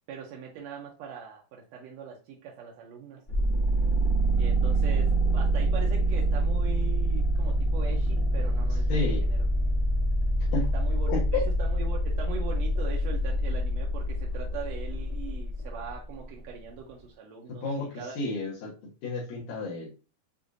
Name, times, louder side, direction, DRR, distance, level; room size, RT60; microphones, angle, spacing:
voice 1, 0.1-3.2 4.4-9.0 9.3-9.4 10.7-18.2, right 6 dB, 80° right, -1 dB, 1.6 m, -41 dB
sound 1, 3.3-15.9, right 1 dB, 40° left, 0.8 m, -26 dB
voice 2, 8.9-9.2 10.5-10.7 11.1-11.5 17.6-18.7 19.0-19.9, left 3 dB, 75° left, -5 dB, 2.5 m, -31 dB
6.7 x 2.5 x 2.5 m, 0.32 s
omnidirectional pair, 3.7 m